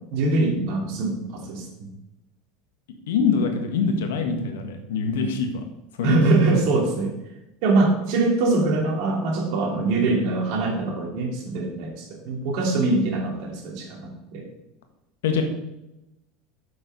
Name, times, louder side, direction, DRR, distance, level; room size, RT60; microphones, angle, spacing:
voice 1, 0.1-1.9 6.0-7.1 7.6-14.4, right 2 dB, 65° right, 1 dB, 2.8 m, -23 dB
voice 2, 3.1-5.5 6.0-6.2 6.5-6.6 15.2-15.4, left 5 dB, 75° left, 6 dB, 1.5 m, -24 dB
7.3 x 7.0 x 5.3 m, 0.91 s
hypercardioid pair, 85°, 0 cm